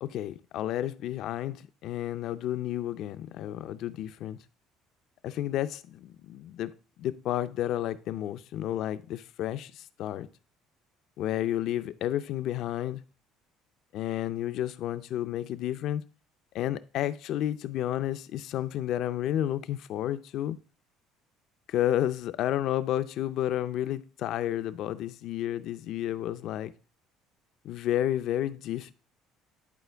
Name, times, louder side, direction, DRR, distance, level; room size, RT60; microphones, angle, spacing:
voice 1, 0.0-4.4 5.2-6.7 7.0-10.3 11.2-13.0 13.9-16.0 16.5-20.6 21.7-26.7 27.6-28.9, left 12 dB, 60° left, 0.4 m, -31 dB
10.5 x 4.4 x 3.4 m
cardioid pair, 135°, 0 cm